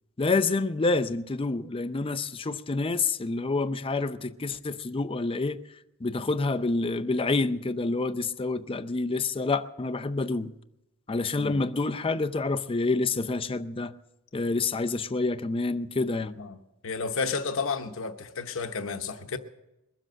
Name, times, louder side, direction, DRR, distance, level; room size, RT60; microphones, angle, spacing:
voice 1, 0.2-5.6 6.0-10.5 11.1-13.9 14.3-16.4, left 3 dB, 25° left, 0.5 m, -28 dB
voice 2, 16.8-19.4, left 4 dB, 65° left, 1.0 m, -31 dB
21.5 x 7.6 x 7.7 m
head